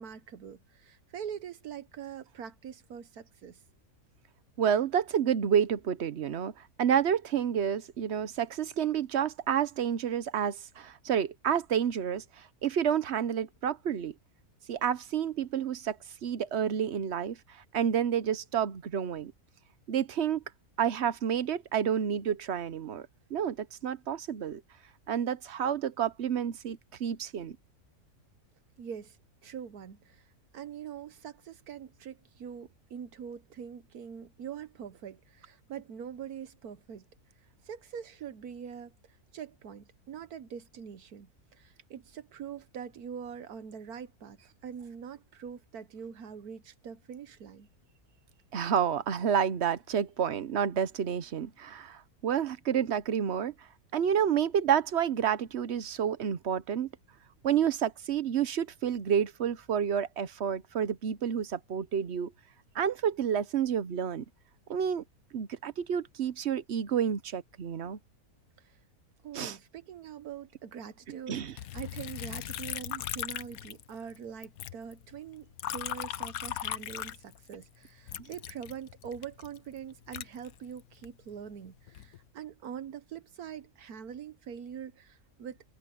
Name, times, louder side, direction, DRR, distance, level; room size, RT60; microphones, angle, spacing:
voice 1, 0.0-3.6 28.8-29.2 29.4-37.1 37.4-47.7 68.6-68.8 69.2-85.6, right 8 dB, 80° right, 1.5 m, -43 dB
voice 2, 4.6-14.1 14.7-16.0 16.2-19.3 19.9-20.4 20.8-24.6 25.1-27.6 48.5-53.5 53.9-56.9 57.4-62.3 62.7-64.2 64.7-65.0 65.3-68.0 69.3-69.6 71.3-71.5, right 8 dB, 50° right, 1.0 m, -29 dB
Liquid, 71.6-74.2 74.4-77.6 78.1-81.1 81.7-82.2, left 11 dB, 70° left, 1.2 m, -38 dB
omnidirectional pair, 1.6 m